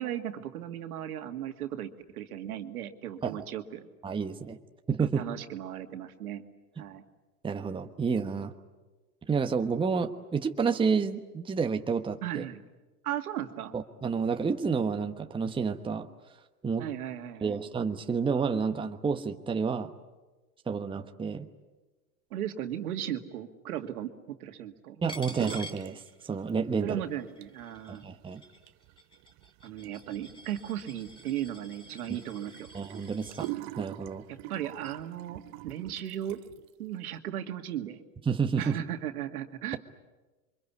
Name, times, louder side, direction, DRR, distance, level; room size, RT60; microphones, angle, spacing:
voice 1, 0.0-3.9 5.0-6.4 6.8-7.0 12.2-12.6 13.0-13.7 16.8-17.6 22.3-25.0 26.8-28.0 29.6-32.7 34.3-36.4 36.8-38.0 38.6-39.8, right 11 dB, 70° right, 6 dB, 2.3 m, -36 dB
voice 2, 4.0-4.6 4.9-5.2 7.4-8.5 9.3-12.4 13.7-16.1 16.6-16.9 17.4-19.9 20.7-21.5 25.0-27.0 27.9-28.4 32.7-33.5 33.8-34.2 38.3-38.8, right 5 dB, 10° right, 5 dB, 1.2 m, -30 dB
Coin (dropping), 25.1-26.6 26.9-33.5, left 1 dB, 10° left, 2.5 m, -49 dB
sound 1, 25.3-25.9 26.2-26.9 27.2-36.7, right 18 dB, 35° right, 0.8 m, -44 dB
28.0 x 24.5 x 8.4 m, 1.2 s
hypercardioid pair, 105°, 46 cm